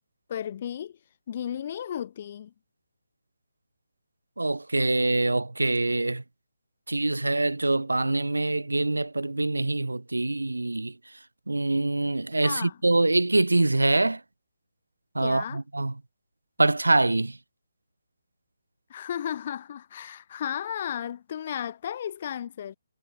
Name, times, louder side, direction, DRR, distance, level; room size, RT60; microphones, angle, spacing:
voice 1, 0.3-1.0 1.3-2.5 12.4-12.8 15.2-15.6 18.9-22.7, left 9 dB, 40° left, 4.7 m, -34 dB
voice 2, 4.4-6.2 6.9-10.9 11.5-14.2 15.2-15.9 16.6-17.4, right 2 dB, 85° right, 2.0 m, -24 dB
figure-of-eight pair, 145°, 0 cm